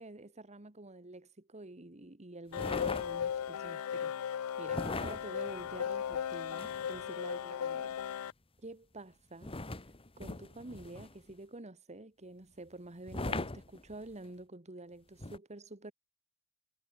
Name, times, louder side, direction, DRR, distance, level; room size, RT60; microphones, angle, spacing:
voice 1, 0.0-8.0 8.6-9.5 10.2-15.9, right 2 dB, 30° right, 1.8 m, -48 dB
sound 1, 2.5-8.3, left 8 dB, 85° left, 0.4 m, -36 dB
sound 2, 2.5-3.5 4.7-7.1 9.4-11.3 13.1-14.3 15.2-15.4, left 2 dB, 25° left, 1.6 m, -40 dB
head